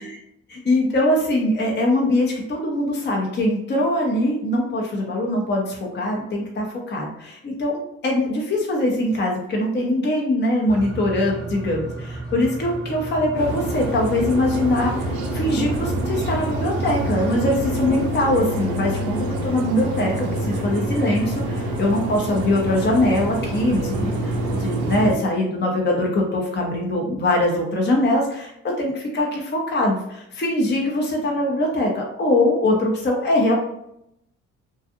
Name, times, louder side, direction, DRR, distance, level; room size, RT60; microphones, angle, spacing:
voice 1, 0.7-33.6, left 1 dB, 30° left, 0 dB, 0.6 m, -22 dB
sound 1, 10.7-18.1, right 2 dB, ahead, 1.1 m, -33 dB
sound 2, 13.4-25.1, right 1 dB, 85° right, 0.6 m, -26 dB
2.5 x 2.3 x 2.6 m, 0.79 s
supercardioid pair, 55°, 34 cm